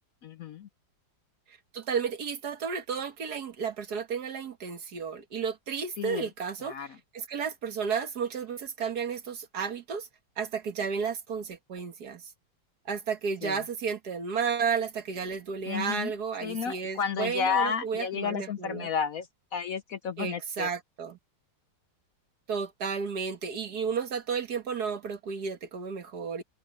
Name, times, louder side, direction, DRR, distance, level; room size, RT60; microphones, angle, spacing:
voice 1, 0.2-0.7 6.0-6.3 6.6-6.9 13.4-13.6 15.7-16.1 16.4-20.7, left 7 dB, 60° left, 1.0 m, -32 dB
voice 2, 1.5-6.9 7.1-10.1 10.4-12.3 12.9-18.9 20.2-21.2 22.5-26.4, right 6 dB, 60° right, 2.0 m, -32 dB
omnidirectional pair, 2.0 m